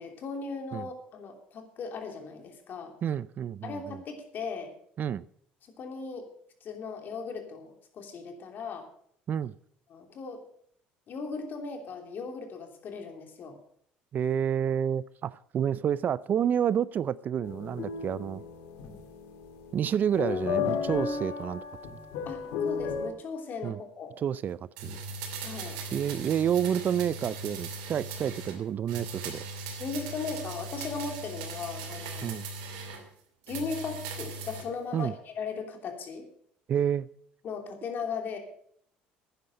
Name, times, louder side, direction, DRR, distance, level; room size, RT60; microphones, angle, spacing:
voice 1, 0.0-2.9 3.6-4.7 5.8-6.3 6.6-8.9 9.9-10.4 11.1-13.6 18.8-19.0 22.2-24.1 25.4-25.8 29.8-32.3 33.5-36.3 37.4-38.4, left 5 dB, 55° left, 3.0 m, -37 dB
voice 2, 3.0-4.0 5.0-5.2 9.3-9.5 14.1-18.4 19.7-22.0 23.6-23.8 24.2-25.0 25.9-29.4 32.2-32.5 34.9-35.1 36.7-37.1, right 9 dB, 45° right, 0.5 m, -29 dB
sound 1, 17.4-23.1, left 6 dB, 80° left, 1.8 m, -34 dB
sound 2, 24.8-28.6 28.9-33.0 33.4-34.7 35.0-35.1, right 3 dB, 85° right, 2.6 m, -39 dB
10.5 x 10.0 x 6.5 m
supercardioid pair, 80°, 4 cm